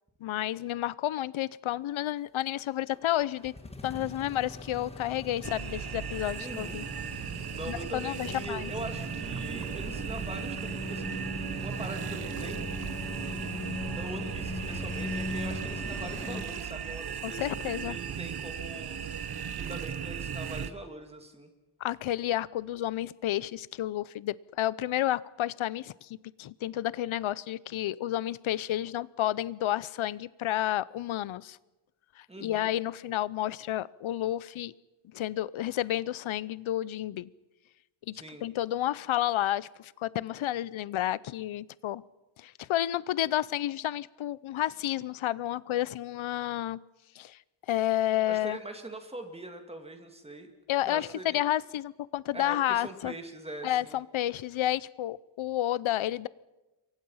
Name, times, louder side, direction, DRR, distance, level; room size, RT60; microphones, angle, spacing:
voice 1, 0.2-3.5 3.8-6.9 7.7-8.7 17.2-18.0 21.8-31.6 32.2-34.7 35.1-37.3 38.1-42.0 42.4-46.8 47.1-47.4 47.7-48.6 50.7-53.1 53.6-56.3, left 13 dB, 80° left, 21 dB, 0.7 m, -31 dB
sound 1, 2.9-16.4, left 2 dB, 10° left, 1.7 m, -40 dB
sound 2, 5.4-20.7, right 8 dB, 50° right, 1.2 m, -37 dB
voice 2, 6.4-6.8 7.5-11.1 11.6-12.6 14.0-19.0 19.5-21.5 32.3-32.7 38.1-38.5 48.3-50.5 50.8-51.4 52.3-54.0, right 1 dB, 10° right, 5 dB, 2.3 m, -42 dB
28.0 x 23.5 x 5.6 m, 1.1 s
wide cardioid pair, 180°, 47 cm